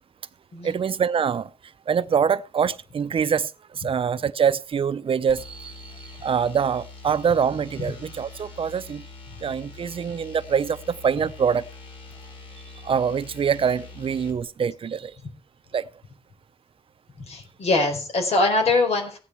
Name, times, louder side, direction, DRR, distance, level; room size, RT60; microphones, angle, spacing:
voice 1, 0.6-1.5 1.9-9.0 9.4-11.6 12.8-15.1 15.7-15.9, right 7 dB, 60° right, 0.6 m, -24 dB
sound 1, 5.3-14.4, left 3 dB, 60° left, 5.1 m, -44 dB
voice 2, 17.2-19.2, left 2 dB, 75° left, 4.5 m, -23 dB
16.0 x 9.9 x 4.6 m
wide cardioid pair, 145°, 11 cm